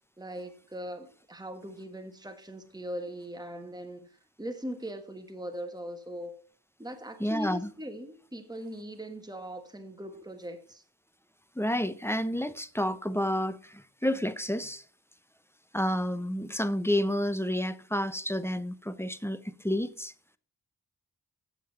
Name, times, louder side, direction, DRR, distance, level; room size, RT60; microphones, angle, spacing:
voice 1, 0.2-6.4 6.8-10.8, equal, 10° right, 1.4 m, -40 dB
voice 2, 7.2-7.7 11.6-14.8 15.7-20.1, left 1 dB, 5° left, 0.8 m, -30 dB
8.5 x 7.5 x 4.2 m
cardioid pair, 45°, 41 cm